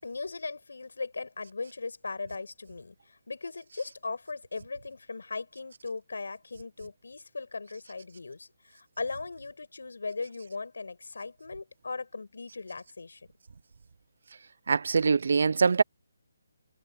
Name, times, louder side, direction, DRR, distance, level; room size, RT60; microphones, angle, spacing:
voice 1, 0.0-13.2, left 3 dB, 85° left, 6.0 m, -38 dB
voice 2, 14.7-15.8, right 5 dB, 50° right, 0.5 m, -23 dB
hypercardioid pair, 175°, 0 cm